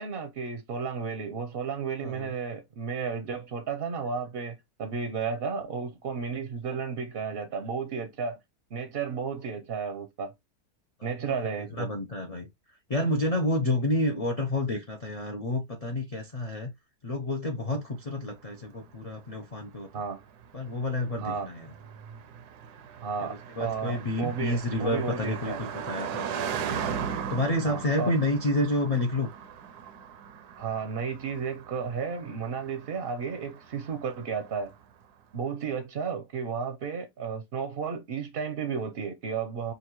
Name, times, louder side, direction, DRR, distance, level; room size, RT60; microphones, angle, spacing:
voice 1, 0.0-8.4 8.7-10.3 11.0-11.9 19.9-20.2 21.2-21.5 23.0-23.3 23.6-25.6 27.6-28.1 30.6-34.7 35.3-39.7, right 5 dB, 55° right, 0.7 m, -33 dB
voice 2, 11.8-12.5 12.9-16.7 17.0-19.9 20.5-21.7 23.3-26.9 27.3-29.3, left 1 dB, 65° left, 0.3 m, -29 dB
Car passing by, 18.4-34.8, right 7 dB, 85° right, 1.2 m, -39 dB
5.3 x 2.5 x 3.0 m
omnidirectional pair, 1.6 m